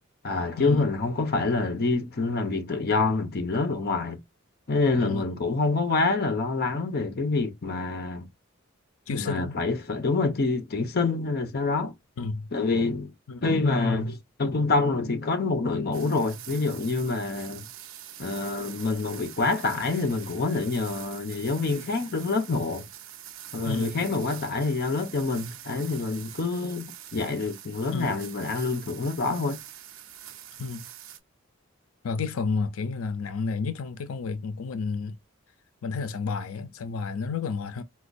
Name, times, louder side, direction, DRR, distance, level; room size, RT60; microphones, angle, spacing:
voice 1, 0.2-4.2 4.7-8.3 9.1-11.9 12.5-13.1 13.4-17.7 18.2-22.9 23.5-29.6, left 3 dB, 50° left, 0.7 m, -26 dB
voice 2, 9.1-9.6 12.2-12.5 13.3-13.4 23.6-23.9 27.9-28.2 30.6-30.9 32.0-35.2 35.8-37.8, left 4 dB, 85° left, 0.5 m, -31 dB
sound 1, 15.9-31.2, right 11 dB, 70° right, 0.6 m, -44 dB
4.2 x 2.3 x 2.5 m
head